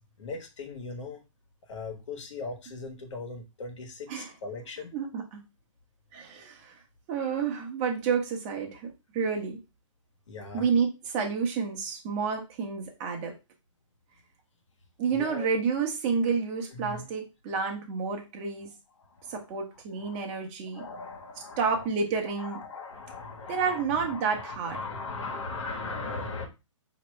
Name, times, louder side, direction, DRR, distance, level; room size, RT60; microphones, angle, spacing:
voice 1, 0.2-1.2 1.7-4.9 10.3-10.7 15.1-15.5 16.7-17.1 19.0-19.6 20.0-20.5 20.7-21.9 22.4-26.5, left 3 dB, 65° left, 3 dB, 1.4 m, -39 dB
voice 2, 4.9-5.4 6.1-6.7 7.1-9.6 10.5-13.3 15.0-18.7 19.3-20.8 21.6-22.6 23.5-24.8, right 5 dB, 25° right, 2 dB, 1.0 m, -30 dB
5.0 x 3.0 x 3.2 m, 0.26 s
hypercardioid pair, 160°, 16 cm